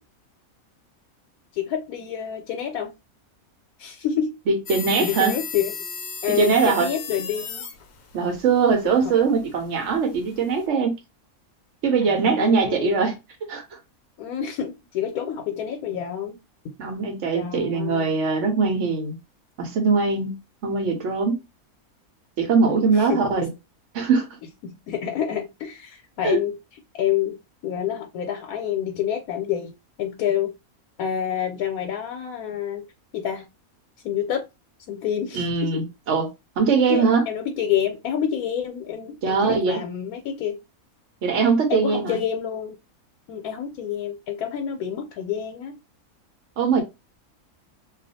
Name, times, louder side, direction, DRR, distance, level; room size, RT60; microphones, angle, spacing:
voice 1, 1.5-2.9 3.8-4.4 5.0-5.7 6.2-7.7 12.0-13.0 14.2-16.4 17.3-18.1 22.6-23.5 24.6-26.6 27.0-27.4 27.6-29.7 30.0-30.5 31.0-32.9 33.1-33.5 34.0-34.5 34.9-35.9 36.9-40.6 41.7-42.8 43.3-45.8, left 9 dB, 90° left, 1.1 m, -28 dB
voice 2, 4.5-5.3 6.4-6.9 8.1-10.9 11.8-13.2 13.5-13.8 16.8-19.1 19.6-21.4 22.4-23.4 23.9-24.3 26.2-26.4 35.3-36.3 36.6-37.2 39.2-39.8 41.2-42.2 46.6-46.8, right 5 dB, 60° right, 0.9 m, -21 dB
sound 1, 4.7-10.7, left 6 dB, 65° left, 0.9 m, -37 dB
2.4 x 2.3 x 4.0 m
omnidirectional pair, 1.5 m